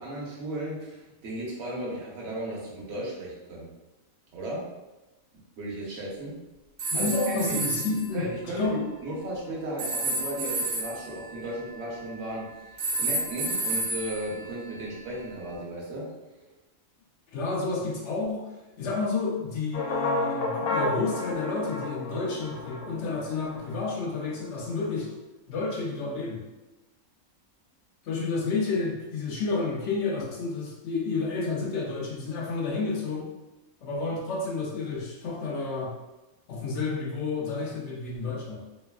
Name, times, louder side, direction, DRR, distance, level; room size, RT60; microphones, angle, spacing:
voice 1, 0.0-3.7 4.3-4.6 5.6-6.4 6.9-12.5 13.0-16.1, right 1 dB, 60° right, -4 dB, 1.0 m, -35 dB
sound 1, 6.8-8.1 9.8-12.3 12.8-15.1, right 2 dB, 80° right, 1.1 m, -31 dB
voice 2, 6.9-8.3 8.6-8.8 17.3-18.4 18.8-25.1 25.5-26.4 28.0-33.3 33.8-35.9 36.5-38.6, left 4 dB, 65° left, -2 dB, 0.8 m, -30 dB
sound 2, 19.7-23.9, left 2 dB, 90° left, 1.1 m, -31 dB
3.1 x 2.4 x 2.2 m, 1.1 s
omnidirectional pair, 1.4 m